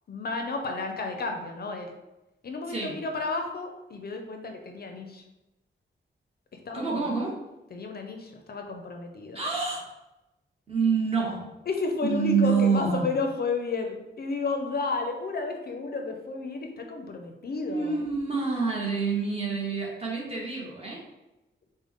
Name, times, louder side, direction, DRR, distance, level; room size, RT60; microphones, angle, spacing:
voice 1, 0.1-1.9 2.4-5.2 6.7-7.1 7.7-9.4 11.7-18.0, left 3 dB, 50° left, 3 dB, 0.5 m, -32 dB
voice 2, 6.7-7.4 9.3-9.9 10.7-11.5 12.0-13.1 17.7-21.0, right 5 dB, 30° right, -3 dB, 1.0 m, -27 dB
5.1 x 2.1 x 3.5 m, 0.96 s
wide cardioid pair, 170°, 20 cm